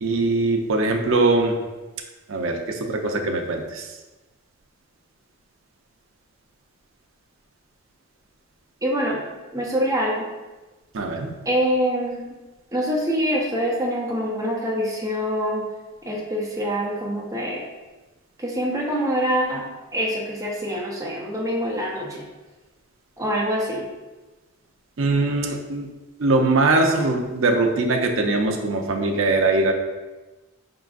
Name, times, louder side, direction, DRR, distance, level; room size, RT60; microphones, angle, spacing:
voice 1, 0.0-1.5 2.3-3.8 10.9-11.3 25.0-25.9 26.2-29.7, right 2 dB, 70° right, 3 dB, 0.5 m, -21 dB
voice 2, 8.8-10.3 11.5-12.2 12.7-15.7 16.0-17.6 18.4-22.2 23.2-23.9, equal, 15° right, -3 dB, 0.7 m, -25 dB
4.5 x 3.8 x 2.4 m, 1.2 s
head